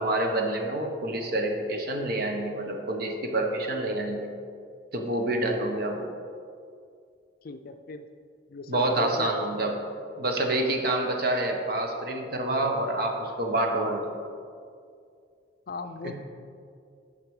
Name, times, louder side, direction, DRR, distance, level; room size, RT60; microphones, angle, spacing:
voice 1, 0.0-4.3 4.9-6.1 8.7-9.8 10.2-14.1 16.0-16.2, right 1 dB, 55° right, 2 dB, 1.1 m, -27 dB
voice 2, 7.4-8.1 8.5-9.3 15.7-16.2, left 3 dB, 55° left, 8 dB, 0.4 m, -38 dB
9.6 x 5.7 x 4.9 m, 2.3 s
head